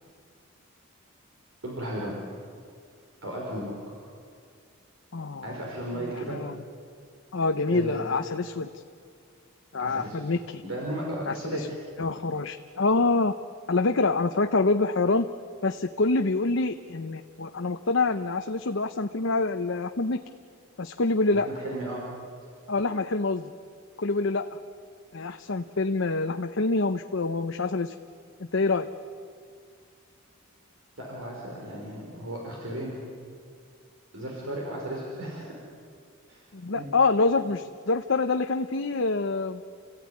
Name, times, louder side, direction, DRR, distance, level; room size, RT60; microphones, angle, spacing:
voice 1, 1.6-2.2 3.2-3.9 5.4-6.4 7.7-8.1 9.8-10.2 10.6-11.8 21.3-22.0 31.0-32.9 34.1-35.5 36.3-36.4 36.7-36.9, right 1 dB, 70° right, -3 dB, 5.1 m, -35 dB
voice 2, 5.1-5.5 6.0-6.6 7.3-8.7 9.7-10.6 11.3-11.7 12.0-13.3 13.7-15.3 15.6-20.2 20.8-21.5 22.7-23.5 24.0-24.5 25.1-27.9 28.4-28.9 36.5-39.6, left 3 dB, 60° left, 6 dB, 0.8 m, -26 dB
29.5 x 15.5 x 9.7 m, 2.2 s
head